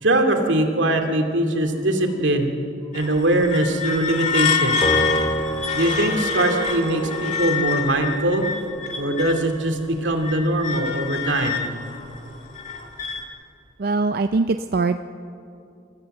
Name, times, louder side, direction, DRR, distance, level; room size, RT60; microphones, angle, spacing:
voice 1, 0.0-2.5 2.9-4.8 5.7-8.4 9.0-11.7, right 1 dB, 85° right, 4 dB, 2.4 m, -21 dB
sound 1, 2.9-9.6 10.0-13.2, left 6 dB, 40° left, 2.2 m, -27 dB
Piano, 4.8-11.4, right 1 dB, 25° left, 2.2 m, -30 dB
voice 2, 13.8-15.0, right 3 dB, 55° right, 8 dB, 0.5 m, -22 dB
26.5 x 14.0 x 7.8 m, 2.5 s
head